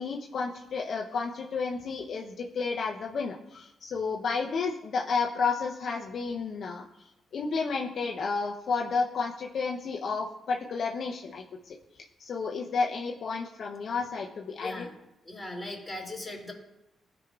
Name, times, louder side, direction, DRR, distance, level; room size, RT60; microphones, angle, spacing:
voice 1, 0.0-6.8 7.3-11.8 12.2-14.9, left 4 dB, 65° left, 0 dB, 0.6 m, -31 dB
voice 2, 14.6-14.9 15.2-16.5, left 2 dB, 15° left, -2 dB, 2.7 m, -38 dB
13.5 x 5.0 x 2.4 m, 0.91 s
supercardioid pair, 55°, 0 cm